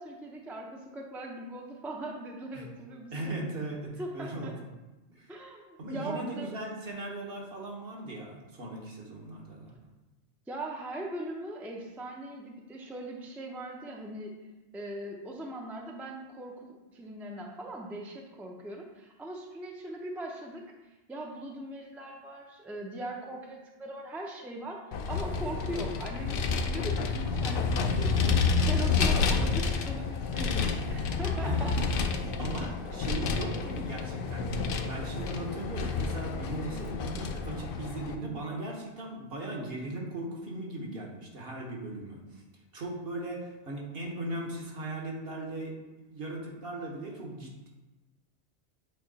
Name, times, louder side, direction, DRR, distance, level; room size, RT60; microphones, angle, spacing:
voice 1, 0.0-3.3 4.0-4.5 5.3-6.5 10.5-14.3 14.7-31.7, right 1 dB, ahead, 0 dB, 0.5 m, -40 dB
voice 2, 3.1-4.5 5.1-5.3 5.8-9.7 31.4-31.6 32.4-42.4 42.7-45.7 46.0-47.7, right 2 dB, 60° right, -1 dB, 1.3 m, -38 dB
Vehicle, 24.9-38.1, left 4 dB, 60° left, 0.7 m, -29 dB
8.3 x 2.9 x 4.0 m, 1.1 s
omnidirectional pair, 1.1 m